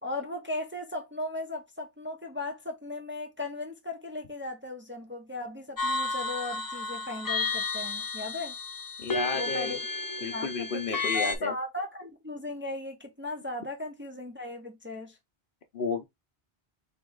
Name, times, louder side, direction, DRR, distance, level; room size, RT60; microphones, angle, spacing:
voice 1, 0.0-8.5 9.3-9.8 10.2-15.2, left 2 dB, 15° right, 0.6 m, -37 dB
sound 1, 5.8-11.4, left 3 dB, 30° left, 0.5 m, -32 dB
voice 2, 9.0-9.8 10.2-11.5 15.7-16.0, left 5 dB, 60° left, 0.9 m, -32 dB
3.7 x 3.0 x 3.7 m
omnidirectional pair, 1.0 m